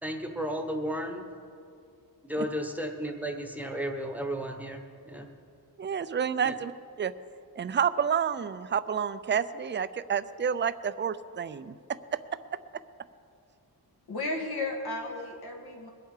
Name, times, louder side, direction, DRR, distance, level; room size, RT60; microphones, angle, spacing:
voice 1, 0.0-1.3 2.2-5.3 6.4-6.5, equal, 5° right, 3 dB, 1.0 m, -33 dB
voice 2, 5.8-6.7 7.0-7.1 7.6-11.8 12.1-12.2 12.5-12.6, right 7 dB, 30° right, 14 dB, 0.4 m, -29 dB
voice 3, 14.1-15.9, left 2 dB, 75° left, 1 dB, 2.2 m, -34 dB
22.0 x 8.0 x 4.9 m, 2.4 s
wide cardioid pair, 170°, 38 cm